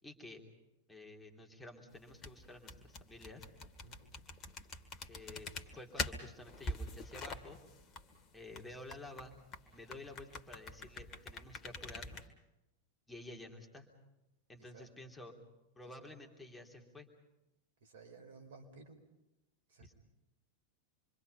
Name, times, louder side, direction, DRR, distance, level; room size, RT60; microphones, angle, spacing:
voice 1, 0.0-0.4 0.9-3.4 5.1-7.6 8.3-9.3 9.7-12.2 13.1-13.9 14.5-15.4 15.7-17.1 19.8-19.9, left 2 dB, 10° left, 1 dB, 3.4 m, -51 dB
sound 1, 2.0-12.3, left 3 dB, 30° left, 2.1 m, -45 dB
voice 2, 17.8-19.0 19.7-19.9, right 4 dB, 60° right, 6 dB, 4.4 m, -55 dB
27.0 x 25.0 x 5.6 m, 0.96 s
figure-of-eight pair, 90°, 0 cm